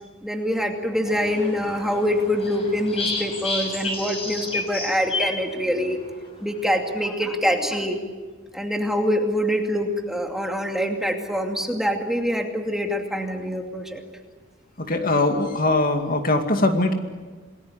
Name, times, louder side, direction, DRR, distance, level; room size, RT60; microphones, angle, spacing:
voice 1, 0.2-6.0 6.4-8.0 8.5-14.0, equal, ahead, 2 dB, 2.5 m, -25 dB
sound 1, 1.1-6.1, left 2 dB, 30° left, 6.0 m, -31 dB
voice 2, 14.8-16.9, left 2 dB, 45° left, 5 dB, 2.4 m, -21 dB
28.0 x 20.0 x 9.8 m, 1.4 s
head